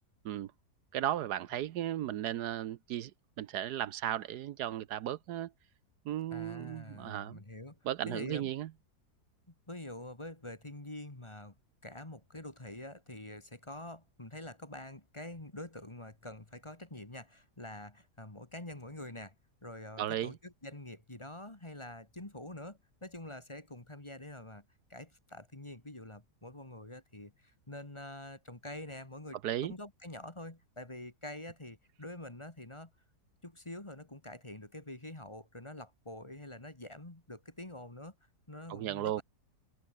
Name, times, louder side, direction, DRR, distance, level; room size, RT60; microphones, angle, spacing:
voice 1, 0.9-3.1 3.4-5.5 6.0-7.4 7.8-8.7 20.0-20.4 29.4-29.7 38.7-39.2, right 12 dB, 75° right, 1.3 m, -35 dB
voice 2, 6.3-7.8 8.1-8.5 9.7-11.5 11.8-19.3 19.6-24.6 24.9-32.9 33.4-38.1 38.5-39.2, left 1 dB, 15° left, 2.1 m, -46 dB
omnidirectional pair, 1.8 m